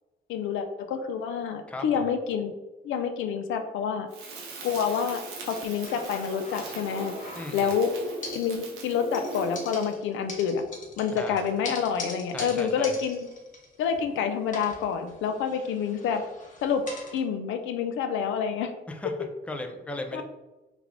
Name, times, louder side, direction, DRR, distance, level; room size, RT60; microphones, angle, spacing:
voice 1, 0.3-2.5 2.8-4.1 4.6-7.1 7.5-7.9 8.3-10.6 11.0-13.3 13.8-16.2 16.6-16.8 17.1-18.7 20.1-20.2, left 7 dB, 85° left, 7 dB, 0.4 m, -28 dB
voice 2, 1.7-2.2 7.4-7.7 11.1-11.5 12.3-13.0 18.9-20.2, left 2 dB, 5° left, 5 dB, 0.4 m, -37 dB
Crackle, 4.1-9.8, right 3 dB, 85° right, 0.8 m, -39 dB
sound 1, 5.8-7.8 8.2-8.9 9.1-14.1 14.5-17.2, left 2 dB, 40° left, 1.0 m, -43 dB
3.4 x 2.4 x 3.3 m, 1.1 s
cardioid pair, 90°, 20 cm